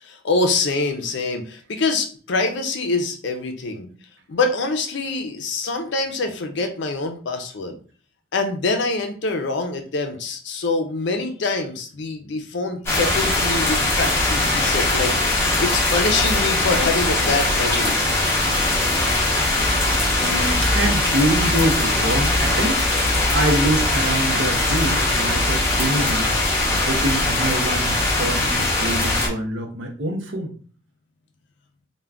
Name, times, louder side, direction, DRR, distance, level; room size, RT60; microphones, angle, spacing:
voice 1, 0.0-3.9 4.3-7.8 8.3-18.0, left 3 dB, 60° left, 5 dB, 0.5 m, -25 dB
sound 1, 12.9-29.3, left 2 dB, 15° left, 0.7 m, -20 dB
voice 2, 19.9-22.9 23.3-26.3 26.7-30.5, right 1 dB, 70° right, 3 dB, 0.6 m, -25 dB
2.4 x 2.2 x 3.3 m, 0.42 s
head